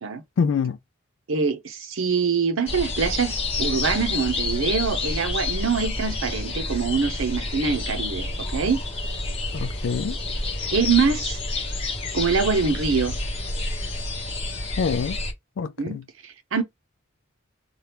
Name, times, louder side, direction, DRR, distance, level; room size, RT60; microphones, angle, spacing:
voice 1, 0.4-0.8 9.5-10.2 14.8-15.2 15.6-16.0, left 6 dB, 65° left, 0.3 m, -25 dB
voice 2, 1.3-8.8 10.7-11.4 12.1-13.2 15.8-16.6, right 5 dB, 80° right, 0.7 m, -24 dB
sound 1, 2.7-15.3, left 2 dB, 30° left, 0.9 m, -29 dB
2.9 x 2.3 x 3.3 m
head